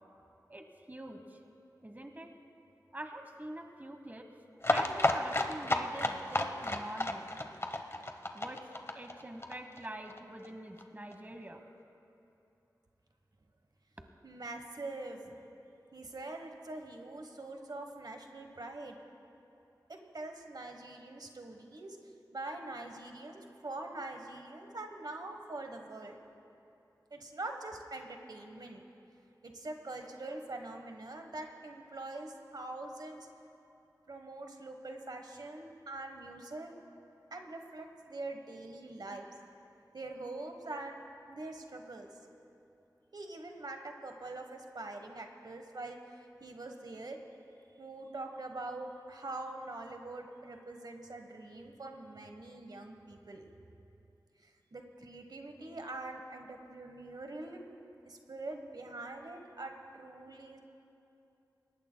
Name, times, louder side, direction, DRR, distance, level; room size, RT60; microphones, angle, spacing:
voice 1, 0.5-1.4 1.8-2.3 2.9-4.3 4.7-7.3 8.3-8.6 8.9-11.6, right 1 dB, 25° right, 5 dB, 1.2 m, -45 dB
sound 1, 4.6-10.2 10.4-10.5 10.8-10.9 11.1-11.2, left 1 dB, 35° left, 0.9 m, -32 dB
voice 2, 14.2-15.4 15.9-19.0 19.9-22.0 22.3-26.2 27.1-28.8 29.4-33.3 34.1-36.7 37.3-39.3 39.9-41.0 41.3-42.1 43.1-47.2 47.8-53.5 54.4-57.6 58.0-60.6, right 2 dB, 70° right, 4 dB, 1.1 m, -44 dB
22.5 x 18.5 x 2.2 m, 2.8 s
wide cardioid pair, 50°, 7 cm